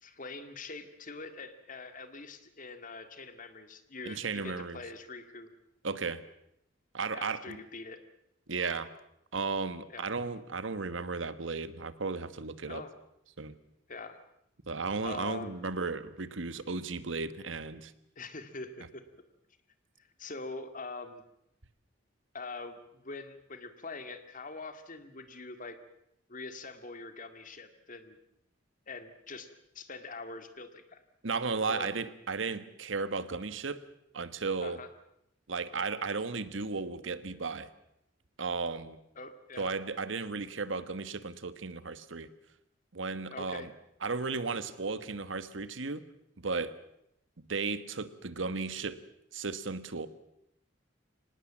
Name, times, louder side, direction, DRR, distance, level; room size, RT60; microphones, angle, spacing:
voice 1, 0.0-5.5 7.1-8.0 9.9-10.1 12.7-12.9 13.9-14.2 15.0-15.6 18.2-19.0 20.2-21.2 22.3-25.8 26.3-28.2 28.9-31.0 31.7-31.9 34.6-34.9 39.2-39.7 43.3-43.7, left 3 dB, 45° left, 9 dB, 2.1 m, -44 dB
voice 2, 4.0-4.8 5.8-6.2 6.9-7.6 8.5-8.9 9.3-12.8 13.4-13.5 14.7-17.9 31.2-33.8 34.1-34.8 35.5-37.7 38.4-39.0 39.6-42.3 42.9-43.7 44.0-46.0 46.4-46.7 47.4-49.0 49.3-50.1, right 4 dB, 90° right, 13 dB, 1.3 m, -35 dB
25.0 x 19.0 x 7.5 m, 0.78 s
head